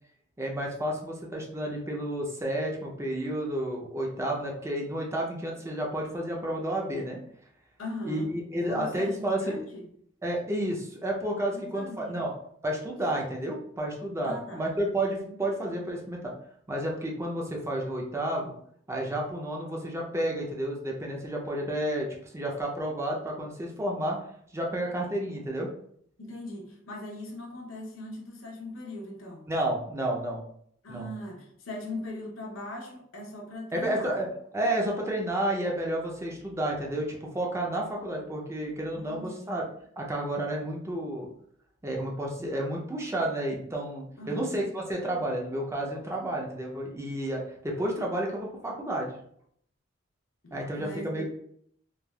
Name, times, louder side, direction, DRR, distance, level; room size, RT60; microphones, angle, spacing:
voice 1, 0.4-7.2 8.0-9.6 10.2-12.3 12.6-16.3 16.7-18.6 18.9-24.2 24.5-25.7 29.5-30.4 30.9-31.1 33.7-34.3 34.5-39.6 40.0-41.3 41.8-49.2 50.5-51.3, right 1 dB, 15° right, 0.4 m, -31 dB
voice 2, 7.8-8.3 8.7-9.9 11.5-12.3 14.2-14.7 15.2-15.4 26.2-29.5 30.8-34.2 38.9-39.6 44.2-44.7 50.4-51.3, left 1 dB, 90° left, 0.7 m, -40 dB
3.2 x 2.2 x 2.2 m
head